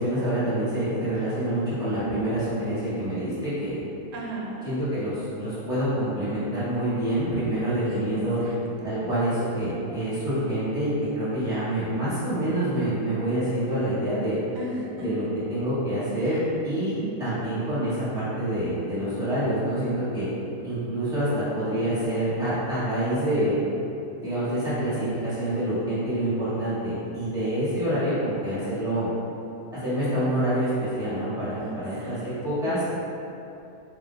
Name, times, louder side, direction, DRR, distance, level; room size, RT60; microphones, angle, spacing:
voice 1, 0.0-3.8 4.6-8.4 8.8-14.4 15.0-15.2 15.5-20.3 20.6-23.5 24.2-29.1 29.8-32.8, right 1 dB, 5° right, -13 dB, 1.1 m, -27 dB
voice 2, 4.1-4.7 7.9-8.1 8.4-8.9 14.5-15.3 16.2-16.5 16.9-17.1 17.4-17.8 31.6-32.2 32.6-32.8, equal, 85° right, -3 dB, 1.2 m, -37 dB
2.7 x 2.2 x 3.8 m, 2.8 s
omnidirectional pair, 1.7 m